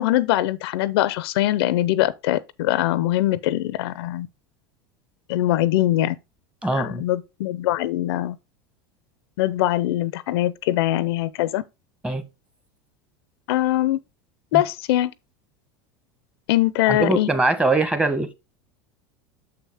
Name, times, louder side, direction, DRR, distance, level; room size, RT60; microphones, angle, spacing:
voice 1, 0.0-4.3 5.3-6.2 6.7-8.4 9.4-11.6 13.5-14.0 14.5-15.1 16.5-17.3, left 14 dB, 75° left, 0.6 m, -22 dB
voice 2, 6.6-7.0 12.0-12.2 14.5-14.6 16.9-18.3, right 2 dB, 10° right, 1.2 m, -22 dB
7.0 x 5.7 x 3.5 m
supercardioid pair, 105°, 13 cm